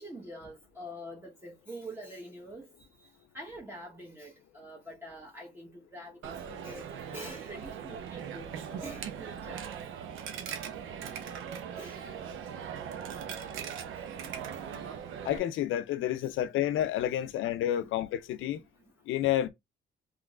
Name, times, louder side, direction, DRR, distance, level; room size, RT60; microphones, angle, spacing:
voice 1, 0.0-2.7 3.0-3.1 3.3-9.7 10.7-10.8 11.8-12.0 13.0-13.1 14.2-14.4 15.3-15.5 15.9-16.3 17.8-17.9 18.5-18.7 19.2-19.3, right 1 dB, 10° right, 1.0 m, -46 dB
Coin (dropping), 6.2-15.4, right 8 dB, 85° right, 0.7 m, -40 dB
voice 2, 15.2-18.6 19.1-19.5, left 12 dB, 80° left, 0.5 m, -29 dB
3.7 x 3.1 x 2.4 m
cardioid pair, 90°, 20 cm